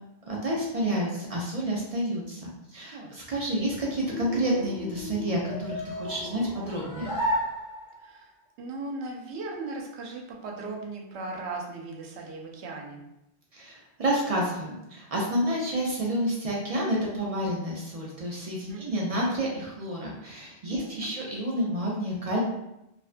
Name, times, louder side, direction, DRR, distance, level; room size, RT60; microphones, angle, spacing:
voice 1, 0.3-7.1 13.5-22.4, right 1 dB, 55° right, -3 dB, 0.4 m, -29 dB
sound 1, 3.2-8.2, left 1 dB, 25° left, 0.5 m, -34 dB
voice 2, 8.0-8.3 8.6-13.0 18.7-19.0 20.7-21.1, right 3 dB, 90° right, 0 dB, 0.9 m, -38 dB
2.4 x 2.1 x 2.4 m, 0.87 s
omnidirectional pair, 1.1 m